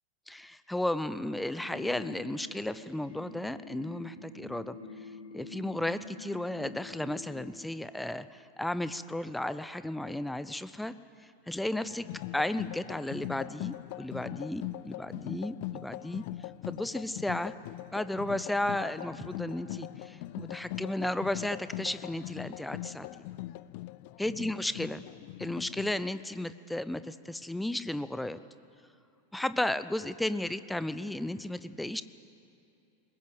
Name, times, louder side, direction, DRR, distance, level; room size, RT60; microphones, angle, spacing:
voice 1, 0.3-4.8 5.3-10.9 11.5-12.1 12.3-16.2 16.7-17.5 17.9-23.2 24.2-25.0 25.4-28.4 29.3-32.0, left 1 dB, 5° left, 14 dB, 0.7 m, -34 dB
sound 1, 1.6-7.4, left 3 dB, 75° left, 3.8 m, -47 dB
sound 2, 11.9-26.0, left 17 dB, 45° left, 0.5 m, -41 dB
21.0 x 20.0 x 8.1 m, 2.6 s
figure-of-eight pair, 90°, 0 cm